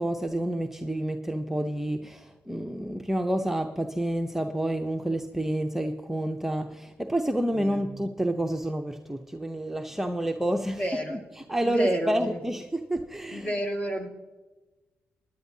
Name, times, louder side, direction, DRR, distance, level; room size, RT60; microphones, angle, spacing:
voice 1, 0.0-13.6, right 1 dB, 5° right, 4 dB, 0.7 m, -29 dB
voice 2, 7.5-7.9 10.8-11.2 11.6-12.4 13.3-14.1, equal, 30° left, 2 dB, 2.2 m, -30 dB
19.0 x 10.5 x 2.8 m, 1.2 s
supercardioid pair, 60°, 5 cm